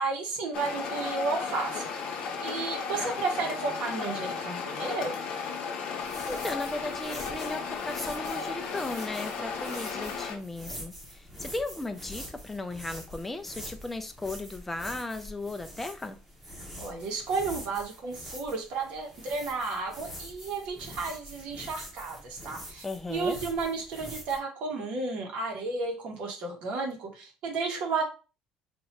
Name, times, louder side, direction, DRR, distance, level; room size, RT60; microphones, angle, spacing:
voice 1, 0.0-1.9 2.4-5.2 16.8-28.0, right 4 dB, 50° right, 1.3 m, -32 dB
sound 1, 0.5-10.4, left 5 dB, 50° left, 0.8 m, -34 dB
voice 2, 6.0-16.2 22.8-23.4, left 2 dB, 10° left, 0.4 m, -36 dB
sound 2, 6.0-24.4, equal, 10° right, 0.9 m, -45 dB
2.9 x 2.7 x 4.4 m
cardioid pair, 175°, 2 cm